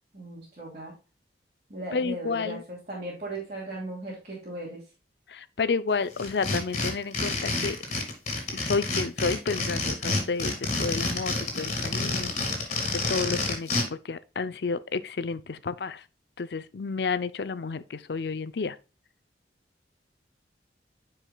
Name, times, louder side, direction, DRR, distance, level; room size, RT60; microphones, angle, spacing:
voice 1, 0.1-0.9 1.7-4.8, right 1 dB, 40° right, 2.7 m, -37 dB
voice 2, 1.9-2.6 5.3-7.8 8.5-12.3 12.9-16.0 16.4-18.8, left 4 dB, 70° left, 0.5 m, -31 dB
sound 1, 6.2-13.8, left 3 dB, 40° left, 2.3 m, -28 dB
9.8 x 4.8 x 2.2 m
head